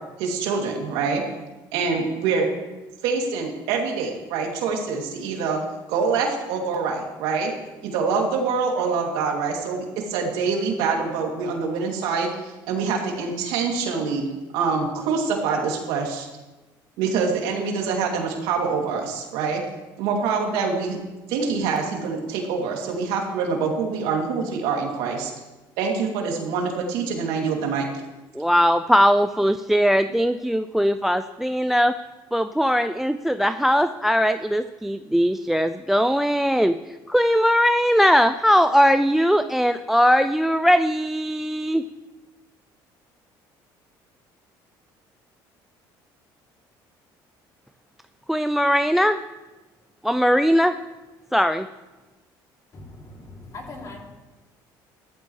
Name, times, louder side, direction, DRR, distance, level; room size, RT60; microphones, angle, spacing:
voice 1, 0.2-1.2 1.7-2.5 3.0-5.6 5.9-7.5 7.8-14.3 14.5-16.3 17.0-19.6 20.0-21.0 21.3-25.3 25.8-27.9, right 5 dB, 90° right, 0 dB, 2.8 m, -25 dB
voice 2, 28.3-31.9 32.3-41.8 48.3-49.2 50.0-50.8 51.3-51.7, equal, 5° right, 11 dB, 0.4 m, -20 dB
voice 3, 52.7-54.0, left 2 dB, 40° left, 0 dB, 3.0 m, -40 dB
15.5 x 13.5 x 3.3 m, 1.1 s
cardioid pair, 115°, 9 cm